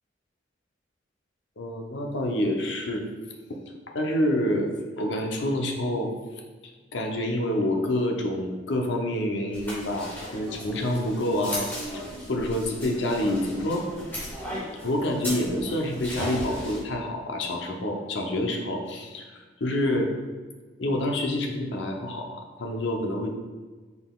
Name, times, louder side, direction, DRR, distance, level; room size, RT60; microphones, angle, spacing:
voice 1, 1.6-3.0 3.9-6.1 6.9-11.7 12.3-13.9 14.8-20.1 20.8-23.3, left 1 dB, 70° left, 2 dB, 0.7 m, -27 dB
sound 1, 9.5-16.8, equal, 10° left, 1.5 m, -36 dB
5.5 x 4.0 x 2.3 m, 1.4 s
head